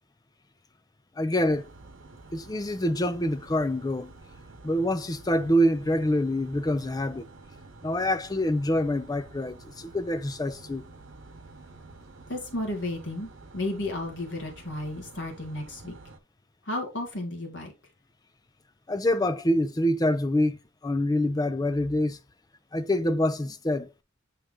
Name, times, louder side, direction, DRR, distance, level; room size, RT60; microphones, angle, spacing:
voice 1, 1.2-1.7 2.3-4.1 4.6-7.3 7.8-10.8 18.9-20.6 20.8-22.2 22.7-24.0, left 1 dB, 20° left, 0.5 m, -26 dB
sound 1, 1.4-16.2, right 3 dB, 80° right, 1.0 m, -49 dB
voice 2, 12.3-15.9 16.7-17.7, left 1 dB, 70° left, 1.9 m, -33 dB
8.6 x 3.4 x 3.7 m
head